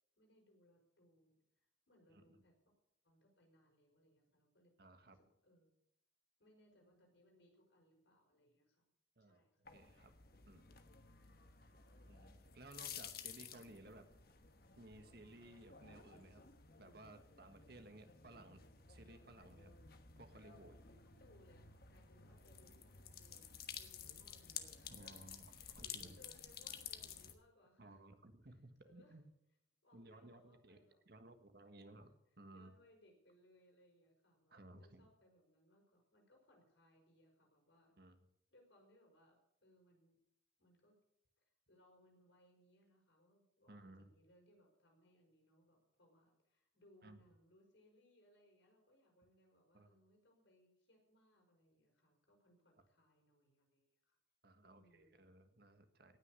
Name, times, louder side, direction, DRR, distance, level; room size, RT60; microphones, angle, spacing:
voice 1, 0.2-2.7 3.0-4.7 5.1-5.8 6.4-8.9 9.2-9.6 10.5-10.6 11.7-11.8 20.8-25.0 25.5-28.0 28.5-29.2 29.8-31.0 31.6-32.0 32.5-38.0 38.5-40.2 40.6-41.0 41.7-54.2 54.6-55.1, equal, 80° left, 1 dB, 5.4 m, -70 dB
voice 2, 4.8-5.2 9.2-9.4 9.7-10.1 10.4-10.6 12.1-14.1 14.8-16.4 16.8-18.6 18.9-19.7 20.2-20.7 24.9-26.1 27.8-29.2 29.9-30.8 31.0-32.7 34.5-35.1 38.0-38.2 43.7-44.1 47.0-47.2 49.7-49.9 54.4-56.2, right 2 dB, 55° right, 8 dB, 1.5 m, -59 dB
sound 1, 9.6-27.3, left 8 dB, 55° left, 1.2 m, -54 dB
18.0 x 6.5 x 8.3 m, 0.80 s
head